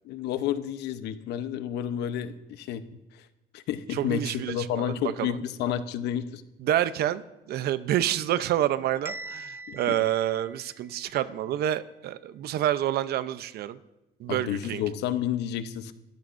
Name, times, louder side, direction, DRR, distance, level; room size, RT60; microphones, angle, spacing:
voice 1, 0.0-3.3 3.5-6.4 9.7-10.0 14.3-15.9, left 10 dB, 80° left, 11 dB, 0.9 m, -31 dB
voice 2, 3.9-5.4 6.6-13.8 14.2-14.8, right 12 dB, 70° right, 13 dB, 0.7 m, -28 dB
Bell, 9.1-11.1, right 2 dB, 15° right, 0.6 m, -42 dB
21.5 x 14.0 x 2.6 m, 1.0 s
cardioid pair, 110°, 17 cm